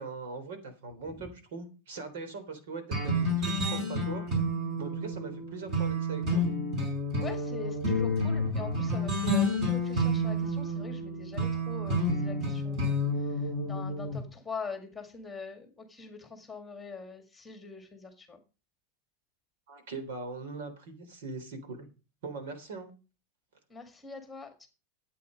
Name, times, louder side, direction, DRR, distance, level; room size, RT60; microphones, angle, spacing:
voice 1, 0.0-4.3 4.8-6.5 19.7-21.9 22.2-22.9, right 4 dB, 75° right, 9 dB, 3.5 m, -41 dB
sound 1, 2.9-14.2, equal, 30° right, 5.1 m, -30 dB
voice 2, 7.2-13.0 13.3-18.4 23.7-24.7, left 5 dB, 5° left, 6 dB, 1.9 m, -43 dB
13.0 x 8.5 x 5.2 m, 0.33 s
supercardioid pair, 175°, 0 cm